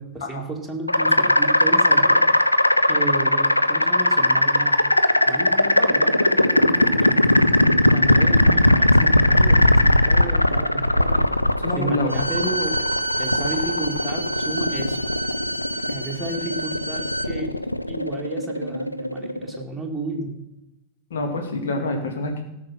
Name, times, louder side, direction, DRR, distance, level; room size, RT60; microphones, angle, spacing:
voice 1, 0.0-2.3 2.9-4.8 5.3-7.3 7.9-11.2 11.8-12.9 13.2-15.0 15.9-20.4, right 2 dB, ahead, 3 dB, 2.4 m, -33 dB
sound 1, 0.9-19.6, left 1 dB, 85° left, 0.5 m, -19 dB
voice 2, 11.6-12.1 21.1-22.4, left 2 dB, 60° left, 3 dB, 2.4 m, -26 dB
Bowed string instrument, 12.1-17.3, right 1 dB, 85° right, 0.7 m, -29 dB
17.5 x 6.3 x 5.9 m, 0.92 s
figure-of-eight pair, 90°, 0 cm